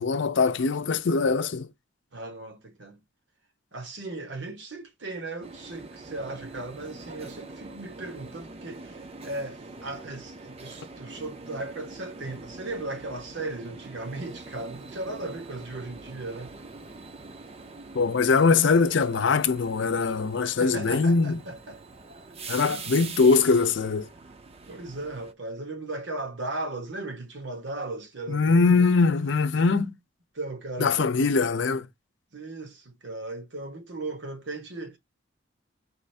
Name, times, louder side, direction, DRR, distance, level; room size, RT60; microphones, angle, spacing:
voice 1, 0.0-1.7 17.9-21.4 22.5-24.1 28.3-30.0 30.8-31.9, left 4 dB, 70° left, 0.5 m, -22 dB
voice 2, 2.1-3.0 3.7-16.5 20.4-21.8 22.6-22.8 24.7-28.9 30.3-31.1 32.3-35.0, right 2 dB, 70° right, 1.2 m, -37 dB
sound 1, 5.4-25.3, right 3 dB, 35° right, 0.6 m, -44 dB
4.9 x 2.6 x 3.2 m
head